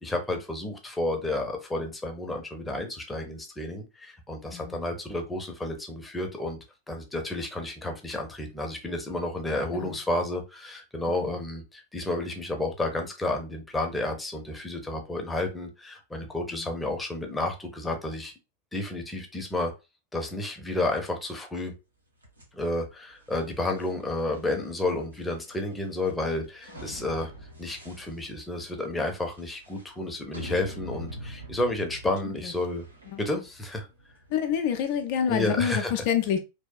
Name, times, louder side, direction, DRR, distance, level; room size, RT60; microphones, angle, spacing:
voice 1, 0.0-6.6 6.9-18.3 18.7-19.7 20.1-21.7 22.5-27.3 27.6-32.9 33.2-33.9 35.3-35.9, left 2 dB, 10° left, 0.6 m, -31 dB
voice 2, 4.5-4.9 9.8-9.9 11.2-11.4 16.5-16.8 32.4-32.5 33.1-33.2 34.3-36.4, left 8 dB, 50° left, 0.4 m, -27 dB
sound 1, 22.2-35.5, right 1 dB, 80° right, 0.8 m, -46 dB
2.7 x 2.2 x 2.2 m
figure-of-eight pair, 90°, 0 cm